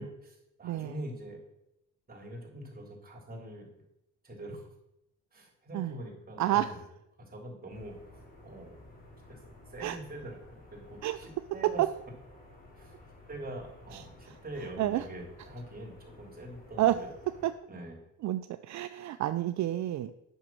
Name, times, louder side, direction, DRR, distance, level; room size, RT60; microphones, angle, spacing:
voice 1, 0.0-1.4 2.1-3.7 4.2-4.7 5.3-6.8 7.2-8.0 8.4-8.7 9.3-9.4 9.7-11.8 12.8-13.0 13.3-17.1 17.7-18.0, right 1 dB, 30° right, 0 dB, 3.4 m, -44 dB
voice 2, 0.6-1.0 5.7-6.0 6.4-6.7 9.8-10.0 11.0-11.2 11.6-11.9 13.9-14.4 14.8-15.0 16.8-17.0 17.4-17.5 18.2-20.1, right 13 dB, 65° right, 11 dB, 0.5 m, -29 dB
sound 1, 7.7-17.5, left 2 dB, 30° left, 3.8 m, -54 dB
9.2 x 6.2 x 6.0 m, 0.83 s
cardioid pair, 90°, 30 cm